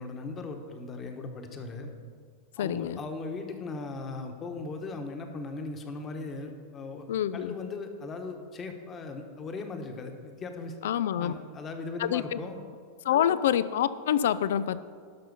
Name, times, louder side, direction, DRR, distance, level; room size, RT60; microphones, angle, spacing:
voice 1, 0.0-1.9 2.6-7.1 7.3-10.8 11.1-12.6 13.1-13.4, left 3 dB, 25° left, 5 dB, 1.2 m, -38 dB
voice 2, 2.6-3.0 7.1-7.5 10.8-11.3 12.0-12.4 13.0-14.8, left 10 dB, 80° left, 16 dB, 0.3 m, -26 dB
12.0 x 5.6 x 5.4 m, 2.1 s
supercardioid pair, 130°, 0 cm